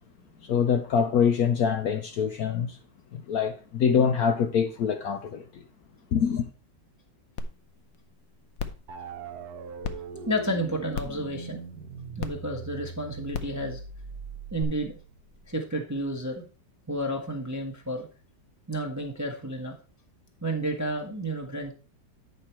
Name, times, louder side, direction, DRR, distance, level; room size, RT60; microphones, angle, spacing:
voice 1, 0.4-2.8 3.1-5.6 6.1-6.5, left 7 dB, 65° left, 0.9 m, -25 dB
sound 1, 7.4-7.5 7.9-8.0 8.6-8.8 9.8-9.9 10.9-11.2 12.2-12.3 13.3-13.6 14.6-14.7, left 6 dB, 90° left, 1.6 m, -32 dB
sound 2, 8.9-15.5, right 5 dB, 65° right, 1.2 m, -41 dB
voice 2, 10.3-11.6 12.2-13.8 14.5-14.9 15.5-16.4 16.9-18.1 18.7-19.7 20.4-21.7, right 1 dB, 15° right, 0.7 m, -31 dB
9.0 x 5.1 x 4.3 m
omnidirectional pair, 2.0 m